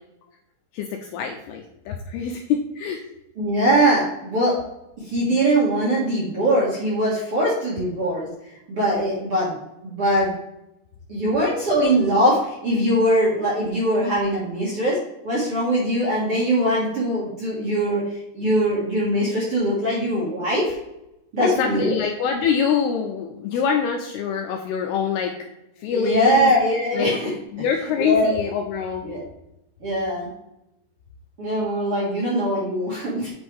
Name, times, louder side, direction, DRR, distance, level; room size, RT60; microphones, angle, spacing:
voice 1, 0.7-3.1 21.4-25.3 25.8-26.5 26.9-27.1 27.5-29.1, left 7 dB, 85° left, 3 dB, 2.3 m, -25 dB
voice 2, 3.4-4.5 5.1-8.3 8.7-9.6 9.8-10.3 11.1-15.0 15.2-20.7 21.3-22.0 25.9-27.3 28.0-28.4 29.0-29.2 29.8-30.3 31.4-33.3, right 1 dB, 50° right, -7 dB, 1.7 m, -21 dB
8.8 x 5.2 x 3.4 m, 0.89 s
omnidirectional pair, 5.2 m